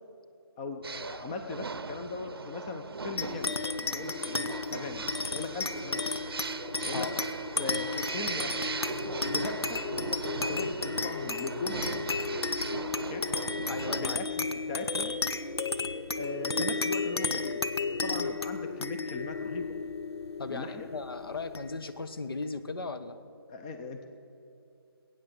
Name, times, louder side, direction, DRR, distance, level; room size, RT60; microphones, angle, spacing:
voice 1, 0.6-6.1 6.8-7.1 7.6-8.7 9.2-10.1 10.5-11.9 13.1-13.3 13.9-15.1 16.2-17.5 18.0-19.7 20.5-20.9 23.5-24.1, left 3 dB, 15° left, 6 dB, 0.5 m, -38 dB
sound 1, 0.8-14.0, right 4 dB, 70° right, 0.7 m, -39 dB
sound 2, 3.2-22.0, left 3 dB, 85° left, 0.8 m, -33 dB
voice 2, 6.9-7.2 13.7-14.2 20.4-23.2, left 3 dB, 65° left, 11 dB, 1.1 m, -37 dB
21.0 x 9.0 x 6.7 m, 2.6 s
figure-of-eight pair, 155°, 13 cm